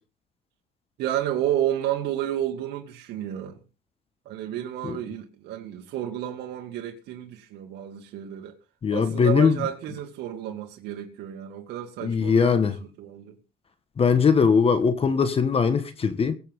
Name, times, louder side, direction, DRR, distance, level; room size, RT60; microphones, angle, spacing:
voice 1, 1.0-3.6 4.3-8.5 8.9-12.6 13.0-13.4, right 11 dB, 80° right, 2.2 m, -31 dB
voice 2, 8.8-9.6 12.0-12.8 14.0-16.4, left 6 dB, 35° left, 1.5 m, -21 dB
22.5 x 7.8 x 3.7 m
cardioid pair, 110°, 17 cm